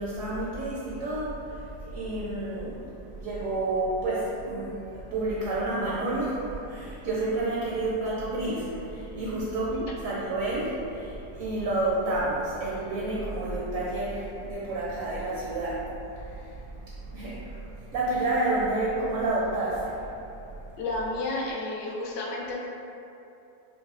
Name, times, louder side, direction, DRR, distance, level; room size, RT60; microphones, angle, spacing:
voice 1, 0.0-1.4 1.8-2.8 3.2-9.7 10.0-15.8 16.4-16.5 17.1-17.5 17.9-20.0, right 2 dB, 70° right, -6 dB, 0.8 m, -29 dB
voice 2, 20.8-22.7, left 2 dB, 80° left, -2 dB, 1.2 m, -32 dB
5.4 x 2.1 x 2.4 m, 2.8 s
omnidirectional pair, 1.8 m